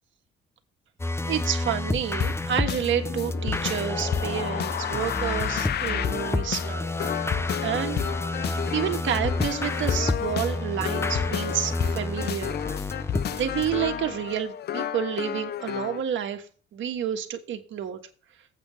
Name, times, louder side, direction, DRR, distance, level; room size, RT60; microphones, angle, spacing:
sound 1, 1.0-14.3, left 2 dB, 15° left, 0.6 m, -30 dB
voice 1, 1.2-7.2 7.6-8.0 8.7-12.6 13.3-16.4 16.7-18.0, right 9 dB, 75° right, 6 dB, 1.5 m, -29 dB
sound 2, 2.2-16.0, left 10 dB, 55° left, 0.5 m, -32 dB
8.2 x 5.6 x 6.3 m, 0.39 s
cardioid pair, 90°, 20 cm